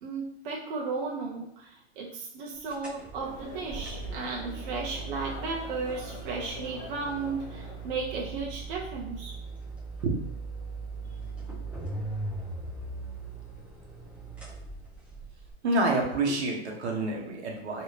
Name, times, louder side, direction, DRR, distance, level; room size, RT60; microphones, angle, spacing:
voice 1, 0.0-9.3, right 4 dB, 55° right, -4 dB, 0.7 m, -35 dB
sound 1, 2.7-15.5, right 3 dB, 5° right, 0.6 m, -40 dB
sound 2, 3.2-8.6, left 3 dB, 40° left, 0.7 m, -45 dB
voice 2, 15.6-17.8, right 2 dB, 75° right, 0 dB, 1.0 m, -28 dB
3.1 x 2.8 x 3.1 m, 0.77 s
hypercardioid pair, 150°, 33 cm